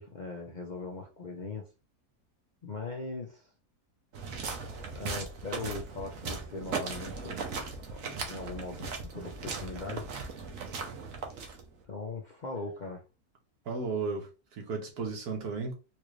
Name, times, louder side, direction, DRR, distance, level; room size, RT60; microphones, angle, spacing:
voice 1, 0.0-1.7 2.6-3.5 4.9-7.4 7.9-10.0 11.9-13.0, left 3 dB, 45° left, 0.6 m, -40 dB
sound 1, 4.1-11.8, right 4 dB, 65° right, 1.2 m, -38 dB
voice 2, 13.7-15.7, right 4 dB, 80° right, 1.7 m, -34 dB
4.4 x 2.5 x 3.1 m
omnidirectional pair, 1.6 m